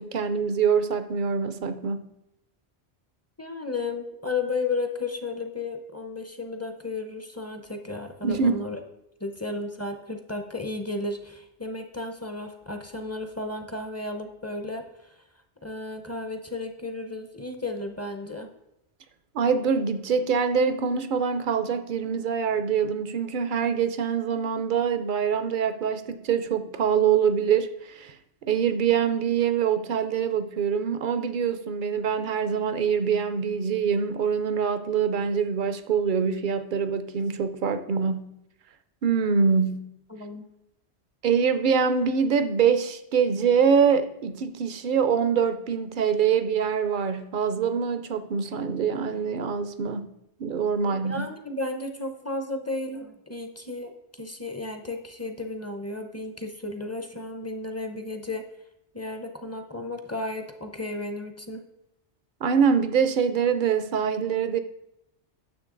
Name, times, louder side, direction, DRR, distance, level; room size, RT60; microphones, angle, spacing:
voice 1, 0.0-2.1 8.2-8.6 19.3-28.1 28.4-38.3 39.0-39.9 41.2-50.1 50.4-51.3 62.4-64.6, right 6 dB, 55° right, 11 dB, 0.7 m, -24 dB
voice 2, 3.4-8.8 9.2-14.8 15.6-18.5 40.1-40.4 50.8-53.9 54.2-58.5 58.9-61.6, left 3 dB, 15° left, 5 dB, 0.6 m, -33 dB
9.8 x 6.9 x 3.8 m, 0.85 s
omnidirectional pair, 1.2 m